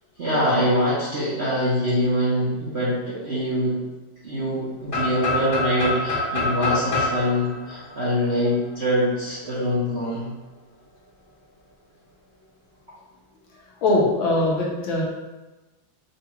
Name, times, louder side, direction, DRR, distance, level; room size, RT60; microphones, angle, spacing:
voice 1, 0.2-3.8 4.2-10.3, equal, 50° right, -9 dB, 0.7 m, -24 dB
sound 1, 4.9-8.7, left 2 dB, 25° left, 0.7 m, -26 dB
voice 2, 13.8-15.0, left 2 dB, 80° left, -3 dB, 1.5 m, -21 dB
5.2 x 2.3 x 3.0 m, 1.1 s
omnidirectional pair, 2.2 m